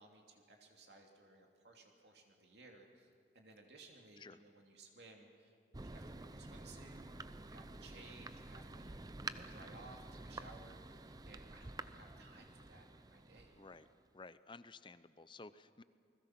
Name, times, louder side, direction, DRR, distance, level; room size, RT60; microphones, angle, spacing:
voice 1, 0.0-5.5 5.8-7.1 7.4-13.6, right 2 dB, 65° right, 1 dB, 2.9 m, -60 dB
Thunder, 5.7-14.1, right 2 dB, 20° right, 0.6 m, -50 dB
voice 2, 13.5-13.9 14.1-15.8, left 3 dB, 25° left, 14 dB, 0.6 m, -54 dB
29.0 x 21.0 x 6.0 m, 2.2 s
head